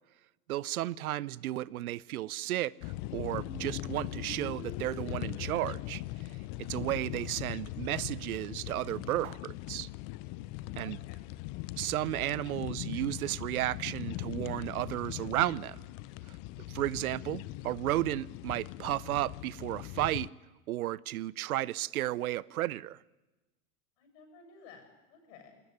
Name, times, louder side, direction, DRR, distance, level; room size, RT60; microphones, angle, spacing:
voice 1, 0.5-6.0 6.7-9.9 10.8-11.0 11.8-15.8 16.3-16.4 16.7-20.3 20.7-23.0, right 15 dB, 75° right, 0.7 m, -33 dB
Squeak, 2.3-8.3, left 6 dB, 85° left, 2.6 m, -52 dB
sound 1, 2.8-20.3, left 17 dB, 45° left, 0.8 m, -40 dB
voice 2, 10.7-11.2 24.0-25.6, left 5 dB, 60° left, 7.4 m, -55 dB
20.0 x 18.0 x 9.8 m
hypercardioid pair, 105°, 44 cm